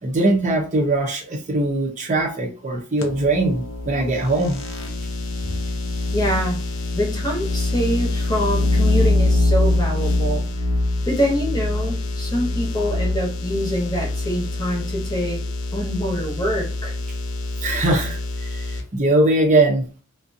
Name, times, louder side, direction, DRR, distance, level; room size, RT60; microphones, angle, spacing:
voice 1, 0.0-4.6 17.6-19.9, right 2 dB, 40° right, 0 dB, 0.6 m, -21 dB
sound 1, 3.0-18.8, left 2 dB, 80° left, 0.6 m, -24 dB
voice 2, 6.1-6.6 6.9-10.5 11.1-15.4 15.7-17.0, equal, 20° left, -2 dB, 0.9 m, -25 dB
2.5 x 2.2 x 2.6 m, 0.39 s
head